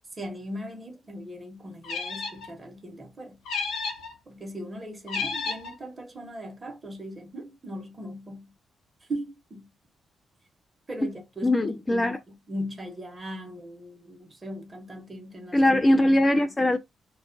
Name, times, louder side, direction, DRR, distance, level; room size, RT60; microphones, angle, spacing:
voice 1, 0.1-3.4 4.3-8.5 9.0-9.7 10.9-15.9, equal, 25° right, 0.8 m, -39 dB
sound 1, 1.8-2.5 3.5-4.1 5.1-5.7, left 4 dB, 90° left, 0.6 m, -32 dB
voice 2, 11.4-12.2 15.5-16.8, left 1 dB, 20° left, 0.4 m, -21 dB
2.3 x 2.1 x 2.5 m
cardioid pair, 100°, 0 cm